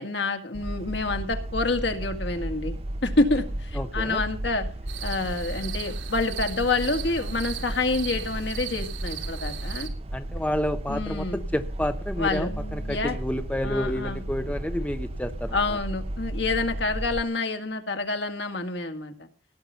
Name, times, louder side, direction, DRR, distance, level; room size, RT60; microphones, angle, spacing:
voice 1, 0.0-2.8 3.0-4.6 5.0-9.9 10.9-11.4 12.2-12.5 12.9-13.2 13.6-14.2 15.5-19.3, left 3 dB, 65° left, 2.1 m, -28 dB
sound 1, 0.5-17.2, right 1 dB, 35° right, 0.7 m, -34 dB
voice 2, 3.7-4.2 10.1-15.8, left 1 dB, 5° left, 0.7 m, -30 dB
sound 2, 4.9-9.9, right 7 dB, 85° right, 2.5 m, -37 dB
sound 3, 12.4-15.1, right 1 dB, 80° left, 4.6 m, -47 dB
17.0 x 8.3 x 5.8 m
head